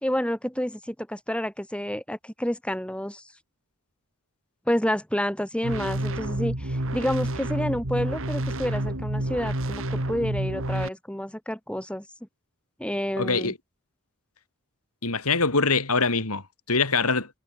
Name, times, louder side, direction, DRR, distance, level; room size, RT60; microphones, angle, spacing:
voice 1, 0.0-3.2 4.7-12.0 12.8-13.5, equal, 5° left, 4.7 m, -29 dB
sound 1, 5.6-10.9, right 1 dB, 60° right, 2.9 m, -29 dB
voice 2, 13.2-13.6 15.0-17.4, left 4 dB, 75° left, 3.9 m, -24 dB
head